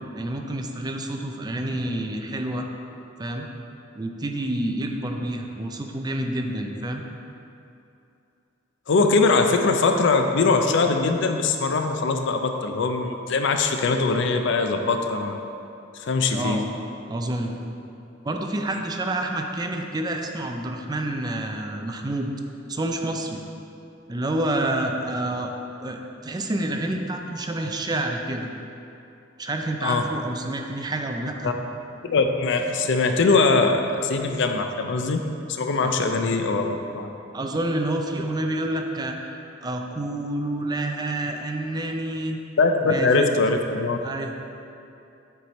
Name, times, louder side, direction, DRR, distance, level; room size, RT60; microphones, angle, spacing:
voice 1, 0.1-2.7 3.2-3.5 3.9-7.0 16.3-16.7 17.1-17.6 18.2-22.3 22.7-23.4 24.1-25.5 25.8-28.5 29.4-31.5 35.8-36.2 37.3-42.4 42.8-43.3 44.0-44.3, right 1 dB, 20° right, 3 dB, 0.4 m, -28 dB
voice 2, 8.9-15.4 16.0-16.6 29.8-30.1 31.4-31.5 32.0-37.1 42.6-44.0, left 3 dB, 65° left, 5 dB, 0.5 m, -22 dB
8.1 x 4.6 x 4.1 m, 2.7 s
head